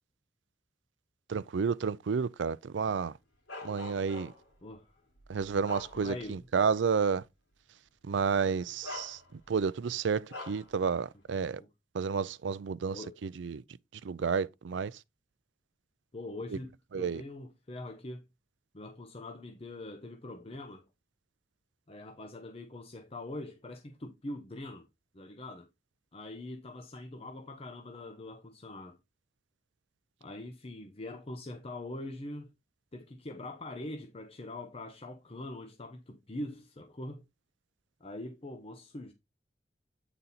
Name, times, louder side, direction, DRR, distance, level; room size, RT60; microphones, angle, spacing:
voice 1, 1.3-3.1 3.6-4.3 5.3-7.2 8.1-9.2 9.5-11.6 11.9-13.6 14.0-14.9 16.9-17.2, right 5 dB, 75° right, 0.4 m, -31 dB
Bark, 3.5-4.6 5.2-6.4 6.8-7.0 8.1-8.3 8.8-9.6 10.3-10.7, left 2 dB, 75° left, 3.3 m, -44 dB
voice 2, 4.6-4.9 5.9-6.5 11.6-11.7 12.9-13.2 14.2-14.4 16.1-18.2 18.7-20.9 21.9-24.9 25.1-25.7 26.1-29.0 30.2-32.5 32.9-37.2 38.0-39.1, left 1 dB, 35° left, 0.8 m, -43 dB
8.9 x 4.0 x 4.1 m
head